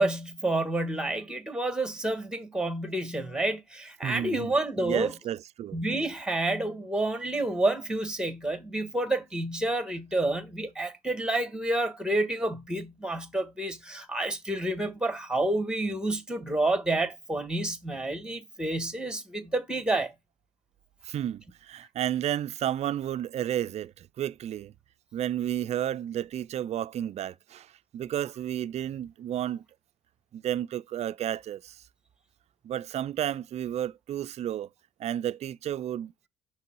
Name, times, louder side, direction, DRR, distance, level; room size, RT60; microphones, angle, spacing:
voice 1, 0.0-5.1 5.7-20.1, right 2 dB, 5° right, 1.6 m, -29 dB
voice 2, 4.0-4.5 4.8-5.8 21.0-24.7 25.1-29.6 30.3-31.8 32.6-34.7 35.0-36.1, right 11 dB, 40° right, 0.4 m, -32 dB
5.8 x 3.2 x 5.4 m
cardioid pair, 115°, 16 cm